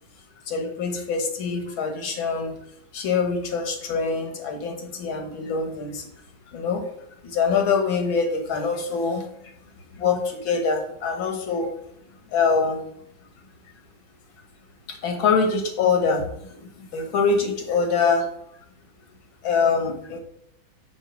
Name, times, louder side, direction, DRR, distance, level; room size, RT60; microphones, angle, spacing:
voice 1, 0.5-2.5 2.9-6.1 6.5-6.8 7.2-9.3 9.9-11.7 12.3-12.8 14.9-18.3 19.4-20.2, left 5 dB, 90° left, 4 dB, 2.1 m, -24 dB
6.5 x 4.7 x 5.8 m, 0.72 s
omnidirectional pair, 2.1 m